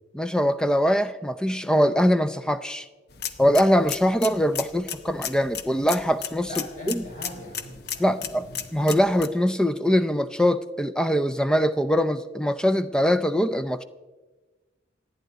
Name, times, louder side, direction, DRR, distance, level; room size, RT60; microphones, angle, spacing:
voice 1, 0.1-2.9 3.4-6.5 6.9-7.0 8.0-8.4 8.7-13.8, equal, 5° left, 11 dB, 0.4 m, -22 dB
sound 1, 3.1-9.3, left 8 dB, 55° left, 0.9 m, -36 dB
voice 2, 6.4-8.6, left 1 dB, 40° left, -3 dB, 5.8 m, -40 dB
28.5 x 9.5 x 4.0 m, 1.3 s
head